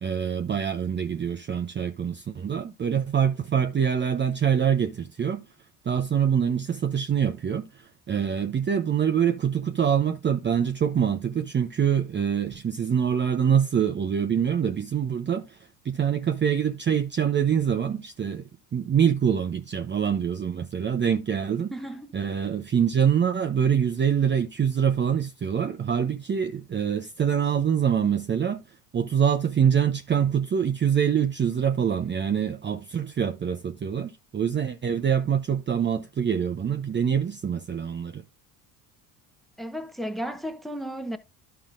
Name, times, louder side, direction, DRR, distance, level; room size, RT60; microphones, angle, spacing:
voice 1, 0.0-5.4 5.8-15.6 15.8-21.7 22.1-38.2, right 8 dB, 25° right, 0.7 m, -25 dB
voice 2, 21.7-22.2 39.6-41.2, equal, ahead, 1.0 m, -34 dB
11.5 x 5.7 x 2.5 m
supercardioid pair, 75°, 43 cm